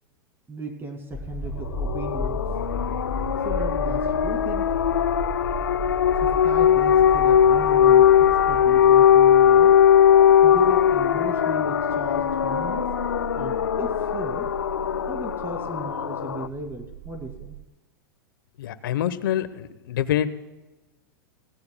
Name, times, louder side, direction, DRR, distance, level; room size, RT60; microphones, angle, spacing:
voice 1, 0.5-2.4 3.4-4.8 6.2-9.7 10.4-12.9 13.3-14.5 15.1-17.6, right 2 dB, 20° right, 4 dB, 2.4 m, -36 dB
sound 1, 1.1-8.7, left 3 dB, 15° left, 6.5 m, -34 dB
sound 2, 1.4-17.7, right 13 dB, 60° right, 0.7 m, -39 dB
sound 3, 1.7-16.5, left 9 dB, 90° left, 0.5 m, -19 dB
voice 2, 18.6-20.3, left 11 dB, 75° left, 14 dB, 1.0 m, -26 dB
26.0 x 17.0 x 2.3 m, 1.1 s
hypercardioid pair, 105°, 11 cm